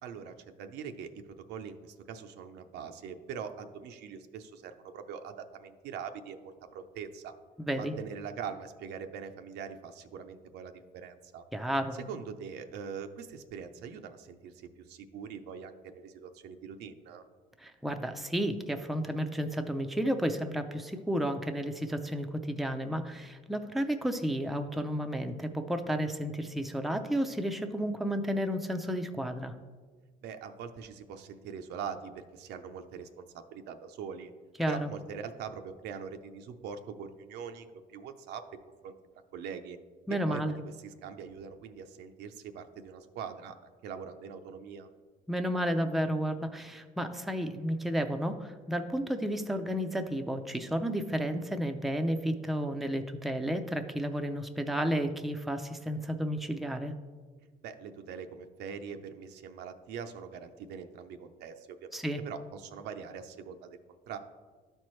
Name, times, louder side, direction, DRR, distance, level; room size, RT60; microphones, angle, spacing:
voice 1, 0.0-7.3 7.8-11.4 12.0-17.2 30.2-34.3 34.7-38.4 38.8-38.9 39.3-39.8 40.1-43.5 43.8-44.9 57.6-63.8 64.1-64.2, right 7 dB, 80° right, 7 dB, 0.6 m, -43 dB
voice 2, 7.6-7.9 11.5-12.0 17.6-29.5 34.6-34.9 40.1-40.6 45.3-56.9 61.9-62.2, equal, ahead, 6 dB, 0.5 m, -32 dB
12.5 x 4.4 x 3.1 m, 1.5 s
cardioid pair, 110°, 17 cm